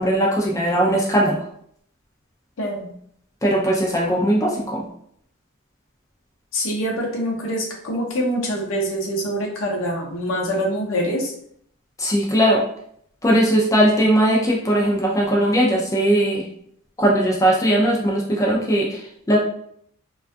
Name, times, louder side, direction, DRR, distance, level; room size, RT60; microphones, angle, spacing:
voice 1, 0.0-1.4 3.4-4.8 12.0-12.6 13.2-16.5 17.0-19.4, right 1 dB, 15° left, -3 dB, 0.4 m, -19 dB
voice 2, 2.6-2.9 6.5-11.3, equal, 65° left, -2 dB, 0.6 m, -25 dB
2.3 x 2.3 x 2.5 m, 0.67 s
head